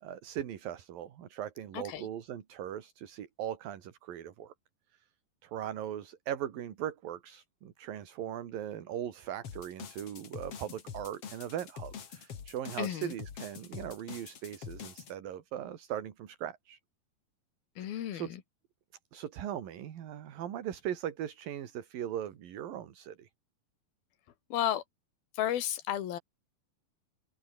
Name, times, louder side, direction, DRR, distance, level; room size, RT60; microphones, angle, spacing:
voice 1, 0.0-4.5 4.9-5.1 5.4-16.8 17.8-18.4 19.1-23.3, right 10 dB, 75° right, 3.8 m, -39 dB
voice 2, 1.7-2.1 12.8-13.1 17.8-18.4 24.5-24.8 25.3-26.2, left 11 dB, 85° left, 3.7 m, -33 dB
sound 1, 9.4-15.1, left 7 dB, 45° left, 3.0 m, -45 dB
open air
omnidirectional pair, 4.2 m